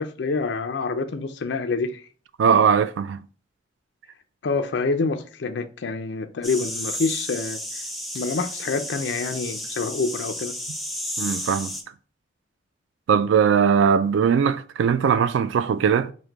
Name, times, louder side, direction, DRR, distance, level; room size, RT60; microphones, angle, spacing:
voice 1, 0.0-2.1 4.4-7.6 8.1-10.5, left 4 dB, 70° left, 0.5 m, -27 dB
voice 2, 2.4-3.2 11.2-11.8 13.1-16.1, right 7 dB, 85° right, 0.3 m, -20 dB
sound 1, 6.4-11.8, left 1 dB, ahead, 0.6 m, -32 dB
5.1 x 2.1 x 4.5 m
head